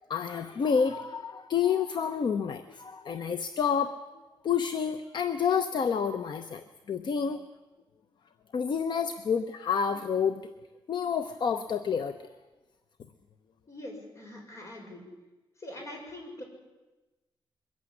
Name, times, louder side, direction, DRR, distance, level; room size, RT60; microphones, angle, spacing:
voice 1, 0.1-4.0 4.4-7.4 8.5-10.4 10.9-12.3, left 7 dB, 55° left, 10 dB, 0.9 m, -29 dB
voice 2, 13.7-15.0 15.6-16.4, left 1 dB, 35° left, 2 dB, 6.0 m, -43 dB
22.5 x 15.0 x 9.8 m, 1.1 s
wide cardioid pair, 150°, 9 cm